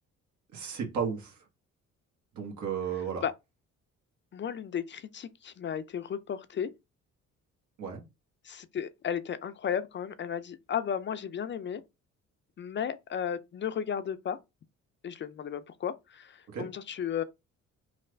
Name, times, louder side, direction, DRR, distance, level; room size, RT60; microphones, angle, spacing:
voice 1, 0.5-1.4 2.3-3.2 7.8-8.0 16.5-16.7, right 7 dB, 70° right, 1.3 m, -33 dB
voice 2, 4.3-6.7 8.4-11.8 12.6-14.4 15.0-17.2, left 8 dB, 40° left, 0.4 m, -34 dB
3.3 x 2.4 x 3.2 m
cardioid pair, 90°, 30 cm